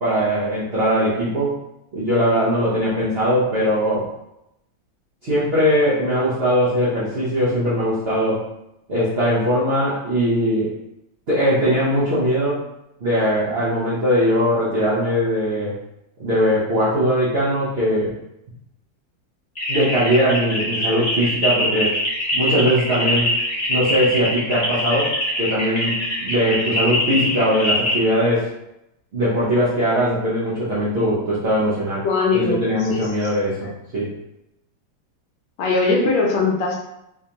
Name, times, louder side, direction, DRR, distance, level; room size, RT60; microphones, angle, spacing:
voice 1, 0.0-1.6 1.9-4.1 5.2-8.4 8.9-10.7 11.3-12.6 13.0-15.8 16.2-18.1 19.7-22.0 22.3-23.3 23.7-28.5 29.1-32.0 32.3-34.1, equal, 45° right, -9 dB, 0.8 m, -20 dB
sound 1, 19.5-28.0, left 1 dB, 25° left, 1.1 m, -23 dB
voice 2, 32.0-33.3 33.6-33.7 35.6-36.8, left 3 dB, 70° left, -1 dB, 1.4 m, -21 dB
3.7 x 3.2 x 2.8 m, 0.85 s
omnidirectional pair, 2.2 m